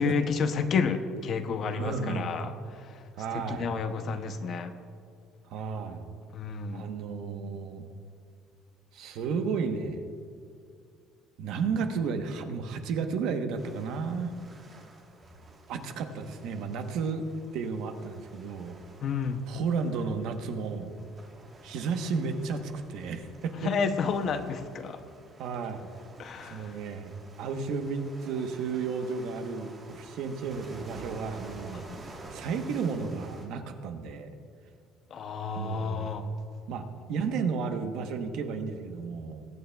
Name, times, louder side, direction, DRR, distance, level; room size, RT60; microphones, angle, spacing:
voice 1, 0.0-3.0 3.3-4.7 6.3-6.9 19.0-19.5 23.6-25.0 26.2-26.8 31.7-32.0 35.1-36.3, left 5 dB, 35° left, 9 dB, 0.6 m, -31 dB
voice 2, 1.8-2.3 3.2-3.7 5.5-6.1 6.7-7.8 8.9-10.0 11.4-14.4 15.7-18.8 19.5-20.9 21.6-23.7 25.4-25.9 26.4-27.1 27.4-31.8 32.3-34.3 35.5-36.1 36.7-39.5, right 5 dB, 55° right, 6 dB, 0.9 m, -33 dB
sound 1, 13.6-33.5, right 2 dB, 20° right, 1.3 m, -50 dB
22.0 x 9.3 x 2.3 m, 2.3 s
cardioid pair, 175°, 0 cm